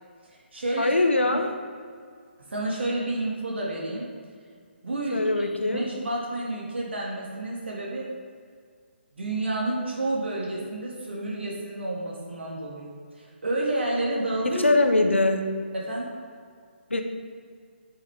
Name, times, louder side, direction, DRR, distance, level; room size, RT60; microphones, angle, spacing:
voice 1, 0.2-0.9 1.2-1.4 2.5-4.1 4.8-8.1 9.1-14.7 15.7-16.1, right 2 dB, 65° right, -4 dB, 2.1 m, -30 dB
voice 2, 0.8-1.5 5.1-5.8 14.6-15.4 16.9-17.0, left 2 dB, 85° left, 5 dB, 0.9 m, -22 dB
9.8 x 6.0 x 3.5 m, 2.1 s
figure-of-eight pair, 140°, 6 cm